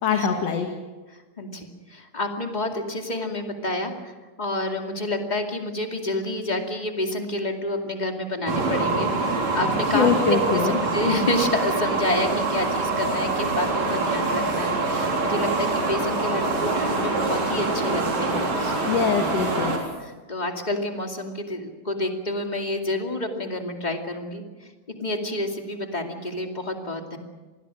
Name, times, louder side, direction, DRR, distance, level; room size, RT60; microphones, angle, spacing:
voice 1, 0.0-0.7 9.9-10.8 18.9-19.8, left 6 dB, 55° left, 4 dB, 2.6 m, -23 dB
voice 2, 1.1-18.8 20.0-24.4 25.0-27.2, left 1 dB, 15° left, 3 dB, 2.1 m, -29 dB
sound 1, 8.5-19.8, right 3 dB, 60° right, 5.0 m, -25 dB
27.5 x 20.5 x 6.4 m, 1.2 s
omnidirectional pair, 3.6 m